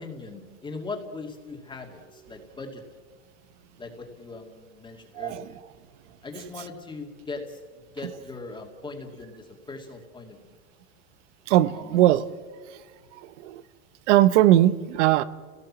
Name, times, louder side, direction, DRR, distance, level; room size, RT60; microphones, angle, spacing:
voice 1, 0.0-2.8 3.8-5.6 6.2-7.6 7.9-10.4 11.7-12.1, left 3 dB, 10° left, 2 dB, 2.5 m, -39 dB
voice 2, 5.1-5.5 11.5-12.2 13.1-13.6 14.1-15.2, right 13 dB, 65° right, 15 dB, 1.0 m, -20 dB
29.0 x 18.0 x 7.5 m, 1.5 s
supercardioid pair, 145°, 39 cm